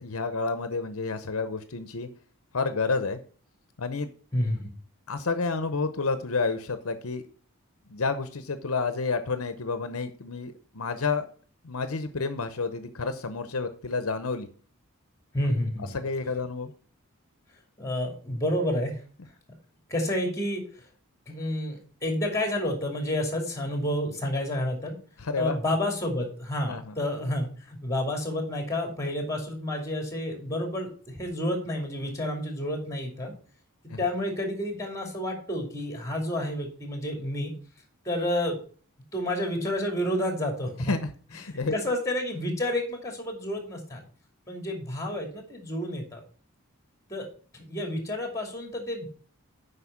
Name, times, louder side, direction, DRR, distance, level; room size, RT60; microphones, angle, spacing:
voice 1, 0.0-2.1 2.5-3.2 3.8-4.1 5.1-7.2 7.9-11.2 11.6-14.5 15.9-16.7 25.2-25.6 26.7-26.9 33.9-34.0 40.8-41.7, left 4 dB, 70° left, 10 dB, 0.9 m, -30 dB
voice 2, 4.3-4.7 15.3-15.9 17.8-19.0 19.9-20.8 21.3-25.0 25.3-33.3 34.0-37.5 38.0-38.6 39.1-40.9 41.7-44.0 44.5-46.2 47.1-47.3 47.5-49.1, left 1 dB, 15° left, 4 dB, 2.7 m, -30 dB
8.2 x 5.5 x 7.1 m, 0.41 s
head